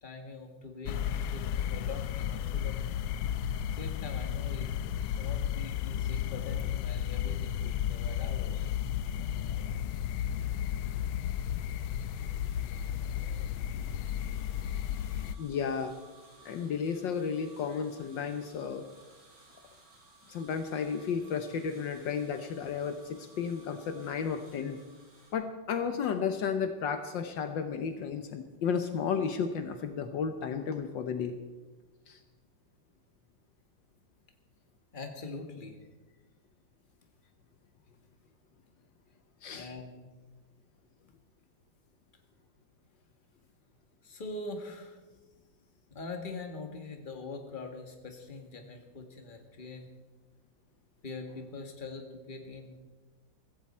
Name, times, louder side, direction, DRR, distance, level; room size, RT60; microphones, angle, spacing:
voice 1, 0.0-2.8 3.7-8.7 34.9-35.8 39.5-40.1 44.0-45.4 45.9-49.9 51.0-52.8, left 3 dB, 25° left, 4 dB, 1.7 m, -43 dB
sound 1, 0.9-15.4, left 10 dB, 90° left, 1.5 m, -33 dB
sound 2, 11.2-25.3, right 3 dB, 75° right, 5.2 m, -59 dB
voice 2, 15.4-15.9 16.4-18.8 20.3-24.8 25.3-31.3 32.1-32.2 39.4-39.7, left 6 dB, 70° left, 8 dB, 1.5 m, -33 dB
16.0 x 15.5 x 4.4 m, 1.2 s
omnidirectional pair, 2.2 m